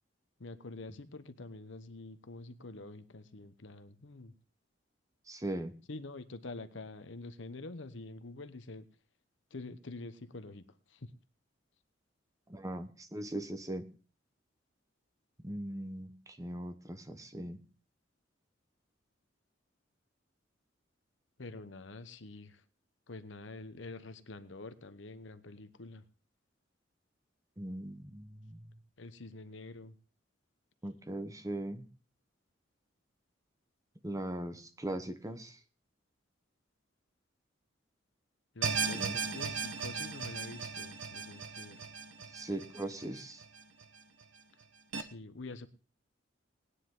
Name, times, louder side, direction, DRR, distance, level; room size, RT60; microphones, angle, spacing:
voice 1, 0.4-4.4 5.9-8.9 9.5-11.1 21.4-22.6 23.1-26.1 29.0-30.0 38.5-41.8 45.0-45.7, left 2 dB, 70° left, 12 dB, 1.0 m, -46 dB
voice 2, 5.3-5.7 12.5-13.8 15.4-17.6 27.6-28.6 30.8-31.9 34.0-35.6 39.0-39.2 42.3-43.4, right 1 dB, 20° right, 9 dB, 1.0 m, -39 dB
sound 1, 38.6-43.8 44.2-44.3 44.9-45.0, right 5 dB, 85° right, 1.2 m, -37 dB
19.0 x 9.8 x 3.8 m, 0.36 s
head